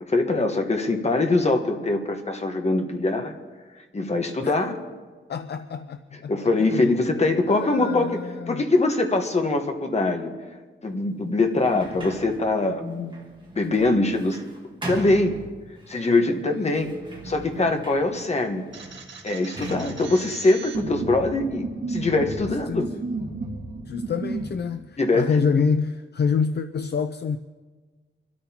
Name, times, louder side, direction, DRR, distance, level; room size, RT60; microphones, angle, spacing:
voice 1, 0.0-3.3 3.9-4.8 6.3-8.1 8.5-10.3 10.8-13.2 13.6-14.4 14.9-15.3 15.9-16.9 17.2-18.6 19.2-22.9 25.0-25.3, left 2 dB, 35° left, 1.3 m, -23 dB
voice 2, 5.3-8.6 16.3-16.7 22.7-23.0 23.9-27.4, left 5 dB, 55° left, 0.5 m, -27 dB
Sliding door, 11.5-16.0 16.7-21.5, right 2 dB, 25° right, 1.8 m, -40 dB
sound 1, 18.7-24.5, right 3 dB, 65° right, 1.9 m, -33 dB
25.5 x 13.0 x 2.9 m
wide cardioid pair, 165°, 20 cm